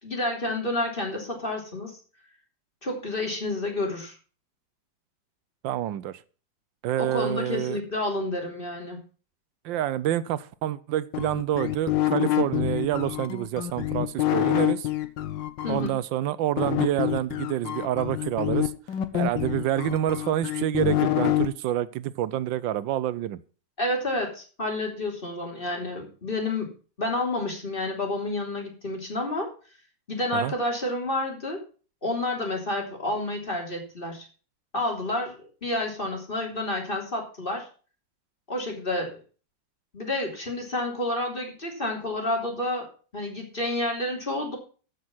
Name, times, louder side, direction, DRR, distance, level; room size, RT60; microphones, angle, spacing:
voice 1, 0.0-2.0 2.8-4.2 7.0-9.0 15.6-15.9 23.8-26.7 27.0-29.5 30.1-31.6 32.0-34.3 34.7-35.3 35.6-37.7 38.5-39.1 39.9-44.6, left 2 dB, 30° left, 1 dB, 3.5 m, -29 dB
voice 2, 5.6-6.2 6.8-7.8 9.6-14.9 15.7-18.7 19.1-23.4 30.3-30.5, right 12 dB, 85° right, 16 dB, 1.4 m, -27 dB
sound 1, 11.1-15.9 16.6-21.5, left 13 dB, 75° left, 1.7 m, -26 dB
13.5 x 6.5 x 6.1 m, 0.38 s
omnidirectional pair, 2.0 m